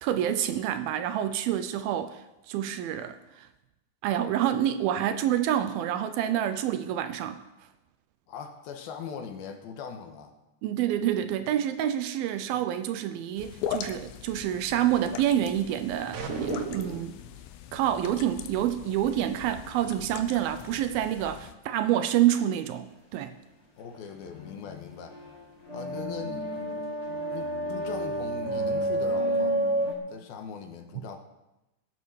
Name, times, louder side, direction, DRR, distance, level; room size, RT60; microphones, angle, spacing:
voice 1, 0.0-2.2 2.5-3.5 4.0-7.4 10.6-17.2 17.7-23.3, right 11 dB, 80° right, 10 dB, 2.3 m, -28 dB
voice 2, 8.3-10.3 12.5-12.7 21.8-21.9 23.8-25.3 25.7-26.9 27.3-29.6 30.1-31.2, left 6 dB, 70° left, 5 dB, 2.7 m, -40 dB
sound 1, 13.4-21.5, left 9 dB, 85° left, 3.1 m, -40 dB
sound 2, 16.1-17.2, right 5 dB, 60° right, 2.5 m, -33 dB
sound 3, 24.1-29.9, right 1 dB, 20° left, 1.9 m, -30 dB
18.0 x 8.5 x 6.4 m, 0.97 s
omnidirectional pair, 4.9 m